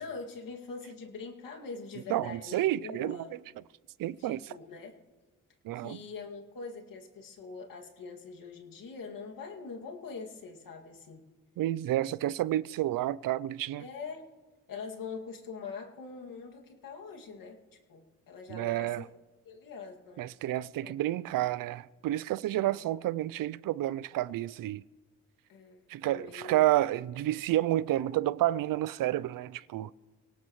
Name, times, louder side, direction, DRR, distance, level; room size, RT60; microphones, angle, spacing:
voice 1, 0.0-3.3 4.2-5.0 5.7-11.2 13.8-14.3 14.7-17.6 17.9-19.1 19.4-20.3 20.8-20.9 22.6-22.8 25.5-26.6, left 4 dB, 75° left, 2.3 m, -43 dB
voice 2, 2.1-3.2 4.0-4.5 5.6-6.0 11.6-13.8 18.5-19.0 20.2-24.8 25.9-29.9, right 14 dB, 75° right, 0.5 m, -30 dB
24.0 x 18.0 x 3.1 m
supercardioid pair, 55°, 34 cm